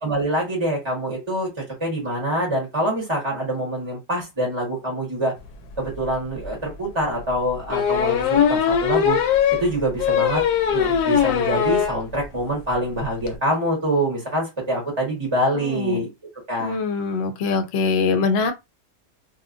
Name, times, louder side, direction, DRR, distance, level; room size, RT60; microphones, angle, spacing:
voice 1, 0.0-1.5 1.8-5.3 5.8-9.2 9.6-16.1 16.5-16.8, right 1 dB, 25° right, 0.6 m, -25 dB
sound 1, 5.9-6.0 6.4-6.5 7.7-12.0 12.4-12.5 12.7-12.8 13.0-13.3, left 8 dB, 80° left, 1.1 m, -20 dB
voice 2, 15.5-16.0 16.6-18.5, left 4 dB, 65° left, 0.7 m, -23 dB
3.0 x 2.3 x 2.4 m
omnidirectional pair, 1.8 m